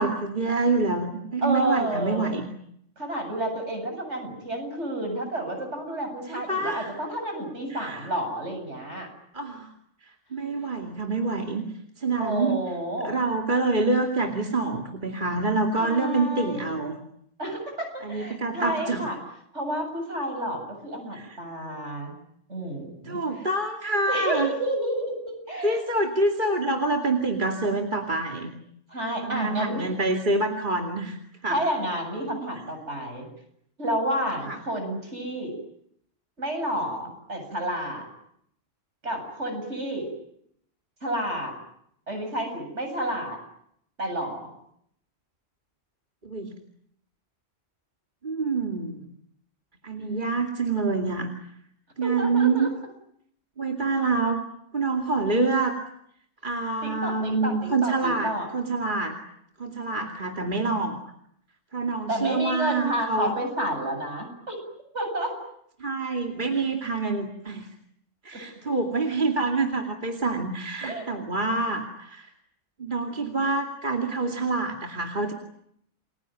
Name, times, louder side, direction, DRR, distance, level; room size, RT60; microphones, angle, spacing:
voice 1, 0.0-2.5 6.3-7.0 7.7-8.1 9.3-9.7 10.0-11.6 12.0-12.6 13.0-17.0 18.0-19.0 21.1-21.4 23.1-24.5 25.6-28.5 29.2-31.6 34.5-34.6 46.2-46.5 48.2-49.0 49.8-51.3 52.0-52.7 53.6-54.4 54.7-55.8 56.4-59.1 59.6-61.0 61.7-63.3 65.8-67.7 68.2-72.3 72.8-75.3, right 3 dB, 40° right, 2 dB, 2.7 m, -26 dB
voice 2, 1.4-2.4 3.0-9.1 12.2-13.1 15.8-16.7 17.4-19.2 19.5-22.1 22.5-23.2 24.1-25.8 28.9-29.8 31.5-33.3 33.8-35.5 36.4-38.1 39.0-40.1 41.0-41.5 42.1-43.4 44.0-44.5 52.0-52.7 56.8-58.5 62.1-64.6 64.9-65.3 70.8-71.1, right 1 dB, 65° right, 4 dB, 8.3 m, -30 dB
30.0 x 22.0 x 9.1 m, 0.72 s
omnidirectional pair, 1.3 m